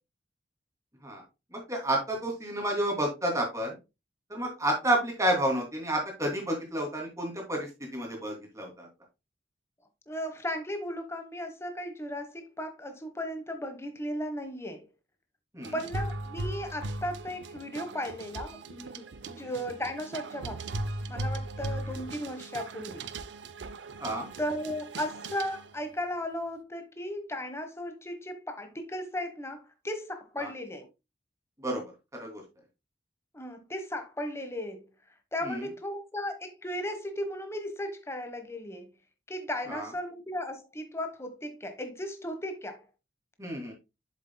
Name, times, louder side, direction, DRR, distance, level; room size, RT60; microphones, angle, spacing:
voice 1, 1.5-3.8 4.3-8.9 15.5-15.7 19.3-19.5 24.0-24.3 30.4-30.5 31.6-31.8 32.1-32.4 35.4-35.7 39.7-39.9 43.4-43.7, right 1 dB, 15° right, 2.7 m, -30 dB
voice 2, 10.1-14.9 15.7-23.1 24.4-30.9 33.3-34.9 35.3-38.9 39.3-42.8, left 1 dB, 15° left, 1.2 m, -36 dB
sound 1, 15.6-25.9, right 2 dB, 75° right, 0.6 m, -38 dB
7.5 x 7.3 x 2.2 m
head